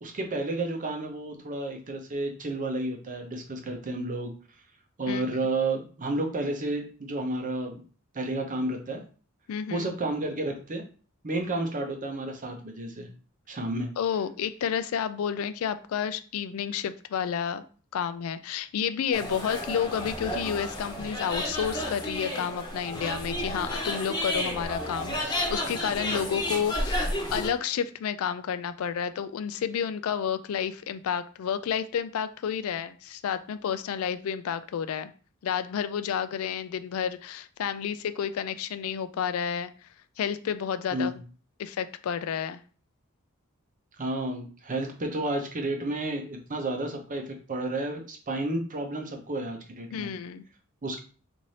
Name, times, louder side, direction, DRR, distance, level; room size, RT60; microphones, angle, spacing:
voice 1, 0.0-4.3 5.0-7.8 8.1-9.0 9.7-10.8 11.2-13.1 13.5-13.9 40.9-41.2 44.0-50.1 50.8-51.0, right 2 dB, 40° right, 4 dB, 0.7 m, -31 dB
voice 2, 9.5-9.9 14.0-17.6 17.9-35.1 35.4-39.7 40.2-41.1 41.6-42.6 49.9-50.4, left 8 dB, 70° left, 12 dB, 0.3 m, -30 dB
sound 1, 19.1-27.5, left 1 dB, 20° left, 1.0 m, -32 dB
4.0 x 2.6 x 3.2 m, 0.39 s
head